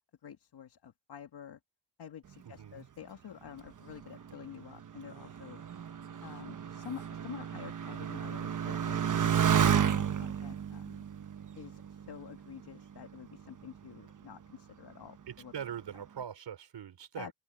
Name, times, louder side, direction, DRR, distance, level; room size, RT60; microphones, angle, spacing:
voice 1, 0.2-1.6 2.0-5.6 6.2-11.0 11.5-15.5 17.2-17.3, left 8 dB, 55° left, 2.0 m, -48 dB
voice 2, 2.4-2.9 15.3-17.3, right 8 dB, 65° right, 4.9 m, -43 dB
Motorcycle, 3.7-12.7 13.4-14.0, right 8 dB, 40° right, 1.1 m, -32 dB
open air
wide cardioid pair, 145°, 46 cm